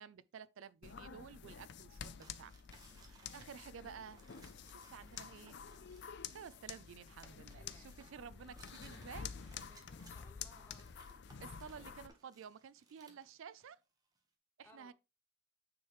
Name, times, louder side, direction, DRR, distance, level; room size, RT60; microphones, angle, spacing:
voice 1, 0.0-4.2 4.7-5.6 6.3-9.6 11.4-13.8 14.6-14.9, right 7 dB, 65° right, 0.4 m, -53 dB
sound 1, 0.8-12.1, left 7 dB, 50° left, 0.4 m, -50 dB
sound 2, 2.1-13.7, right 2 dB, 15° right, 1.1 m, -65 dB
voice 2, 7.2-7.9 9.7-10.9 14.6-14.9, left 1 dB, 10° left, 1.0 m, -63 dB
9.4 x 4.8 x 3.0 m
head